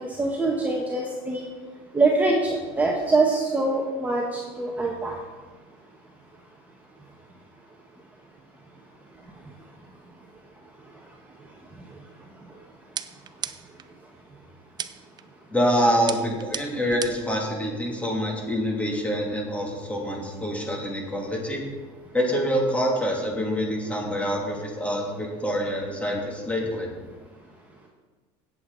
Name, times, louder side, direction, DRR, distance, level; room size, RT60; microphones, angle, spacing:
voice 1, 0.0-1.5 1.9-5.2, right 3 dB, 15° right, -1 dB, 1.5 m, -24 dB
sound 1, 13.0-13.9 14.8-15.2 16.1-17.3, right 8 dB, 35° right, 0.6 m, -34 dB
voice 2, 15.5-21.6 22.1-26.9, equal, 10° left, -1 dB, 3.1 m, -26 dB
16.5 x 8.1 x 4.2 m, 1.4 s
supercardioid pair, 105°, 13 cm